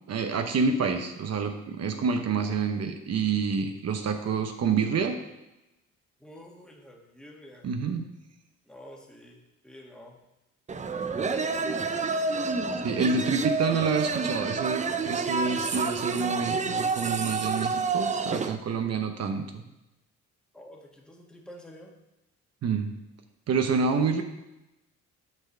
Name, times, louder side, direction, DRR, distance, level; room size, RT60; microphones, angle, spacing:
voice 1, 0.1-5.2 7.6-8.1 12.8-19.6 22.6-22.9 23.5-24.2, right 5 dB, 55° right, 6 dB, 0.9 m, -28 dB
voice 2, 6.2-7.7 8.6-10.2 11.1-12.0 20.5-21.9, equal, 5° left, -1 dB, 1.6 m, -48 dB
sound 1, 10.7-18.6, right 4 dB, 25° right, 0.5 m, -29 dB
8.4 x 4.5 x 6.6 m, 0.95 s
cardioid pair, 90°, 30 cm